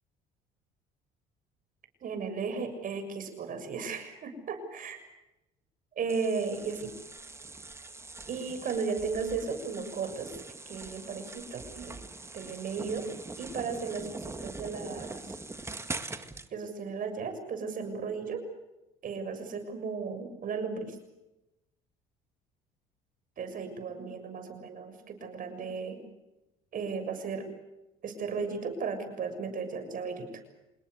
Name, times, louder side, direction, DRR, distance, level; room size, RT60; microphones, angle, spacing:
voice 1, 2.0-5.0 5.9-6.9 8.3-12.0 12.3-13.1 13.4-15.4 16.5-18.4 19.0-21.0 23.4-26.0 26.7-27.5 28.0-30.3, right 5 dB, 50° right, 8 dB, 6.8 m, -35 dB
sound 1, 6.1-16.5, right 3 dB, 15° right, 2.0 m, -43 dB
27.0 x 20.5 x 8.1 m, 0.96 s
supercardioid pair, 85°, 18 cm